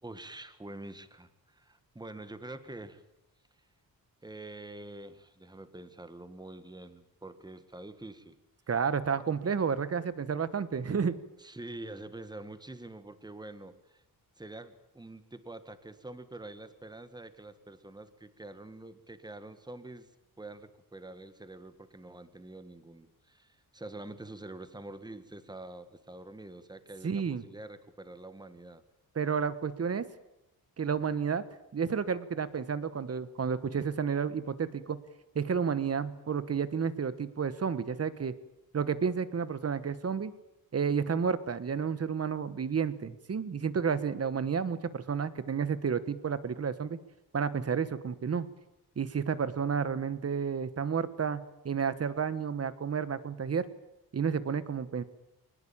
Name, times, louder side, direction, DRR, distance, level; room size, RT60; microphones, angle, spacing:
voice 1, 0.0-3.0 4.2-8.4 11.4-14.0 14.4-20.1 20.4-28.8, right 2 dB, 10° right, 11 dB, 1.7 m, -46 dB
voice 2, 8.7-11.2 27.0-27.4 29.1-30.0 30.8-31.4 31.7-35.0 35.3-38.3 38.7-40.3 40.7-47.0 47.3-48.5 49.0-53.7 54.1-55.0, right 6 dB, 40° right, 14 dB, 1.4 m, -31 dB
23.0 x 20.0 x 8.9 m, 0.87 s
wide cardioid pair, 155°, 37 cm